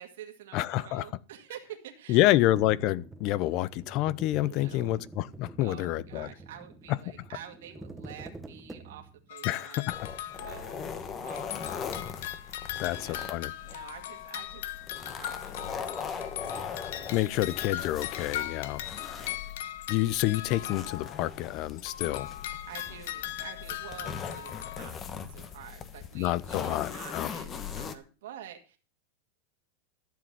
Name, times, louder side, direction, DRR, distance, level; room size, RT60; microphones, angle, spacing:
voice 1, 0.0-2.4 4.4-5.1 5.6-9.9 10.4-17.6 18.3-18.9 19.2-19.4 22.7-25.0 25.3-28.8, right 10 dB, 80° right, 2.0 m, -49 dB
voice 2, 0.5-1.1 2.1-6.3 6.9-7.0 9.4-10.0 12.8-13.5 17.1-18.8 19.9-22.3 26.1-27.3, left 16 dB, 45° left, 0.7 m, -28 dB
sound 1, 2.6-9.3, right 2 dB, 5° right, 1.2 m, -46 dB
sound 2, 9.3-11.0 11.3-21.5 21.8-24.8, left 12 dB, 70° left, 1.0 m, -39 dB
sound 3, 9.9-27.9, left 6 dB, 25° left, 1.3 m, -40 dB
13.0 x 7.7 x 6.9 m
supercardioid pair, 150°, 0 cm